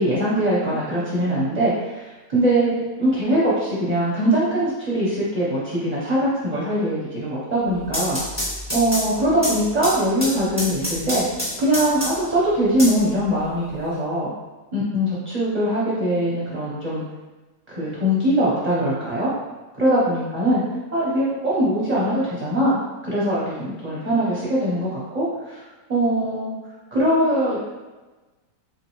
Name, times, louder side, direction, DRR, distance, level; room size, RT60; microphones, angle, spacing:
voice 1, 0.0-2.0 2.3-2.7 3.0-8.2 8.7-11.2 11.6-14.3 14.7-17.0 17.7-19.3 19.8-20.6 20.9-25.6 25.9-26.5 26.9-27.6, right 1 dB, 30° right, -8 dB, 0.9 m, -22 dB
sound 1, 7.7-12.3 12.8-13.8, equal, 10° left, 1.0 m, -28 dB
3.7 x 3.7 x 3.0 m, 1.2 s
omnidirectional pair, 1.8 m